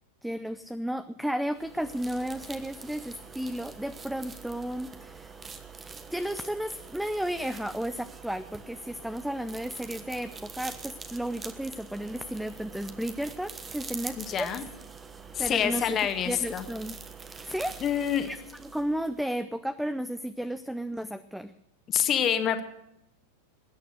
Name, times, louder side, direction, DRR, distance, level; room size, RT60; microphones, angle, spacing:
voice 1, 0.2-5.3 6.1-14.5 15.4-16.0 16.3-17.0 17.4-21.5, equal, ahead, 13 dB, 0.6 m, -33 dB
sound 1, 1.5-19.3, right 5 dB, 15° right, 1.3 m, -45 dB
voice 2, 14.2-14.6 15.3-16.7 17.8-18.3 21.9-22.6, left 9 dB, 30° left, 8 dB, 1.7 m, -27 dB
21.0 x 9.3 x 6.6 m, 0.80 s
figure-of-eight pair, 90°, 0 cm